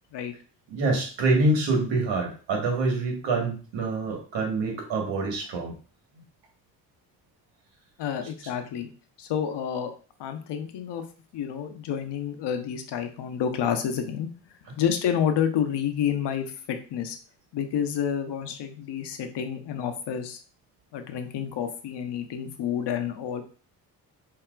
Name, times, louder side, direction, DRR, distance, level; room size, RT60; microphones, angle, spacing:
voice 1, 0.7-5.7, right 2 dB, 85° right, 1 dB, 1.5 m, -26 dB
voice 2, 8.0-8.9 9.2-9.9 10.2-11.0 11.3-14.3 14.7-17.2 17.5-20.4 20.9-23.4, left 8 dB, 70° left, 6 dB, 0.9 m, -29 dB
5.6 x 2.8 x 2.4 m, 0.38 s
cardioid pair, 90°, 44 cm